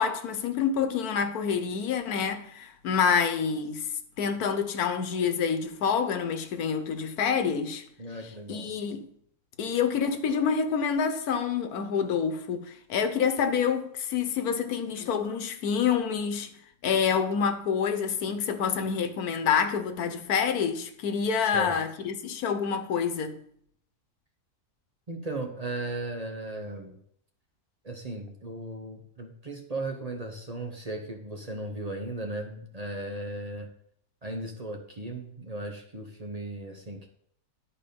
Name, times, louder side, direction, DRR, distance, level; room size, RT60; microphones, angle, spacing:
voice 1, 0.0-3.9 4.2-7.8 8.5-9.1 9.6-16.5 16.8-23.4, left 6 dB, 90° left, 1.4 m, -27 dB
voice 2, 8.0-8.7 21.5-21.8 25.1-27.0 27.8-33.7 34.2-37.1, right 2 dB, 30° right, 0.8 m, -36 dB
11.0 x 4.6 x 5.1 m
omnidirectional pair, 1.5 m